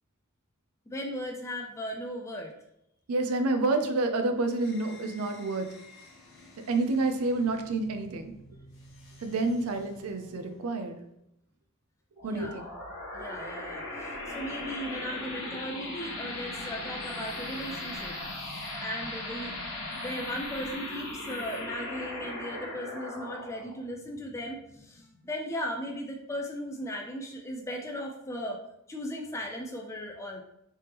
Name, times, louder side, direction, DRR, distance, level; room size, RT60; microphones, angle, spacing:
voice 1, 0.9-2.5 12.2-12.7 13.1-28.6 28.9-30.4, equal, 15° left, 1 dB, 0.3 m, -37 dB
voice 2, 3.1-5.7 6.7-8.3 9.2-11.0 12.2-12.6, right 2 dB, 75° right, 7 dB, 0.4 m, -28 dB
sound 1, 4.4-11.0, left 1 dB, 55° left, 0.9 m, -53 dB
sound 2, 12.2-25.3, left 2 dB, 75° left, 1.2 m, -38 dB
3.3 x 3.3 x 2.9 m, 0.80 s
head